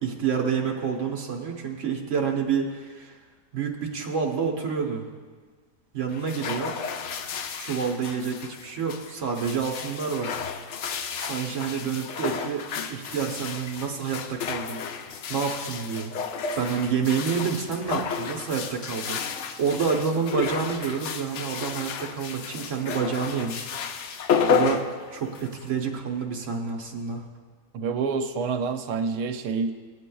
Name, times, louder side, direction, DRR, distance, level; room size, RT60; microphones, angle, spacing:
voice 1, 0.0-3.2 3.5-5.0 5.9-6.7 7.6-10.3 11.2-12.6 12.9-14.8 15.3-16.1 16.6-19.2 19.6-23.7 24.5-24.8 25.1-27.2, right 6 dB, 55° right, 1 dB, 1.2 m, -28 dB
sound 1, 6.1-25.7, left 6 dB, 70° left, 0.7 m, -32 dB
voice 2, 27.7-29.7, right 5 dB, 85° right, 6 dB, 1.2 m, -27 dB
17.5 x 8.3 x 2.3 m, 1.5 s
omnidirectional pair, 1.7 m